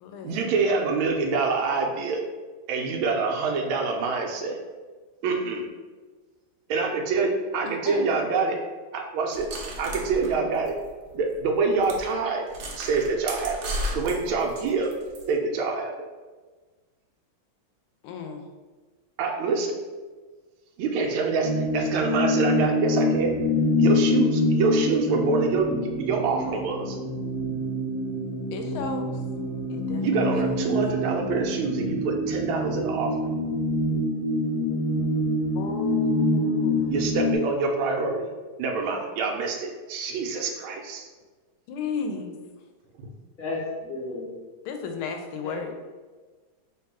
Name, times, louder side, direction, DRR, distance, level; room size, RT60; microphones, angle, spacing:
voice 1, 0.2-2.2 2.7-4.6 5.2-5.7 6.7-8.6 8.9-9.5 9.8-10.8 11.1-12.4 12.8-14.9 15.3-16.1 19.2-19.8 20.8-23.3 23.8-25.7 26.0-27.0 30.0-33.1 36.9-38.3 38.6-41.1 43.0-43.1, right 4 dB, 80° right, 1 dB, 1.4 m, -26 dB
voice 2, 7.6-8.1 18.0-18.4 28.5-29.2 29.7-30.5 35.6-36.9 41.7-42.4 44.7-45.7, left 5 dB, 85° left, 5 dB, 1.4 m, -34 dB
sound 1, 9.3-11.1 11.4-11.5 11.8-12.0 12.5-15.2, equal, 65° right, 1.1 m, -34 dB
sound 2, 21.4-37.3, left 1 dB, 15° left, 1.0 m, -26 dB
voice 3, 43.4-44.3 45.4-45.7, left 2 dB, 55° left, -5 dB, 0.5 m, -33 dB
3.5 x 2.9 x 4.6 m, 1.3 s
omnidirectional pair, 2.3 m